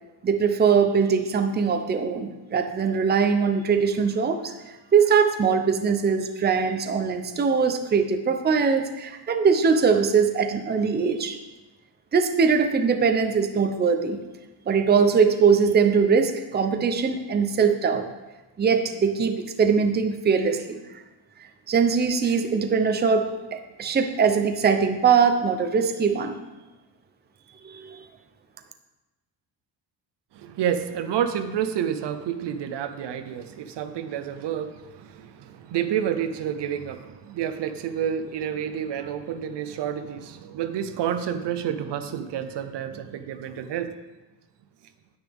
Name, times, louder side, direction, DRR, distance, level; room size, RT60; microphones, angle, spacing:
voice 1, 0.2-11.4 12.1-14.2 14.7-18.1 18.6-20.8 21.7-26.4 27.6-28.1, right 6 dB, 25° right, 6 dB, 0.6 m, -22 dB
voice 2, 30.3-44.0, right 9 dB, 70° right, 10 dB, 0.8 m, -29 dB
9.9 x 9.4 x 3.5 m, 1.1 s
cardioid pair, 160°, 43 cm